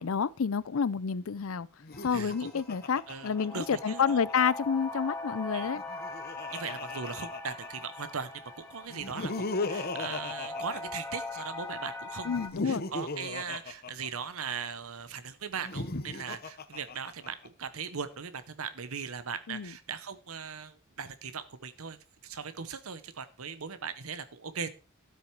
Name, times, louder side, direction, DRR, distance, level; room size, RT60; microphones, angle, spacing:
voice 1, 0.0-1.7 2.0-5.8 12.3-12.8 19.5-19.7, left 6 dB, 70° left, 0.5 m, -29 dB
Laughter, 1.8-4.3 5.6-8.0 8.9-11.4 12.3-14.7 15.5-17.5, left 3 dB, 45° left, 1.0 m, -37 dB
sound 1, 1.9-12.5, left 2 dB, 10° left, 2.2 m, -41 dB
voice 2, 3.1-4.2 5.5-5.7 6.5-8.3 8.6-12.3 12.6-22.0 22.2-24.7, right 6 dB, 80° right, 1.0 m, -39 dB
12.5 x 8.0 x 4.6 m
head